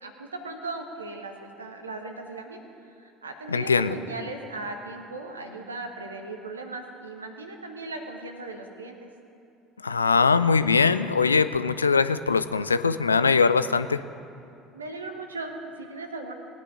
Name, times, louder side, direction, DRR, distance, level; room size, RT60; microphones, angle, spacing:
voice 1, 0.0-2.6 3.0-9.1 14.7-16.3, right 2 dB, 80° right, 5 dB, 1.1 m, -37 dB
voice 2, 3.5-4.0 9.8-14.0, left 5 dB, 80° left, 13 dB, 0.4 m, -21 dB
19.0 x 9.7 x 4.9 m, 2.6 s
figure-of-eight pair, 60°, 0 cm